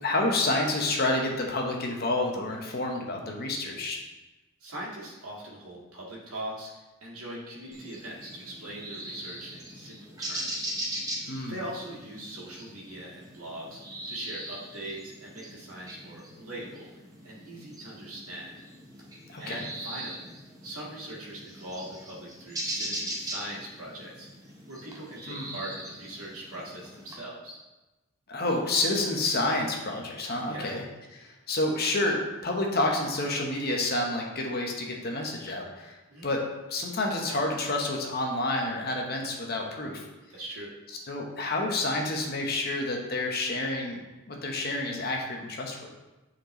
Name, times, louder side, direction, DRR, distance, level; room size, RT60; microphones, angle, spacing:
voice 1, 0.0-4.0 11.3-11.6 19.3-19.7 25.3-25.5 28.3-30.8 31.2-36.0 36.2-36.4 36.7-40.0 41.1-44.0 44.3-45.9, left 2 dB, 45° left, 1 dB, 1.0 m, -29 dB
voice 2, 4.6-10.7 11.5-13.8 14.1-16.9 17.2-18.6 19.4-20.2 20.6-24.3 24.7-27.6 30.4-30.8 36.1-36.3 40.3-40.8, right 1 dB, 90° right, -5 dB, 1.7 m, -41 dB
sound 1, 7.7-27.2, right 1 dB, 15° right, 0.9 m, -40 dB
7.9 x 4.4 x 3.1 m, 1.1 s
head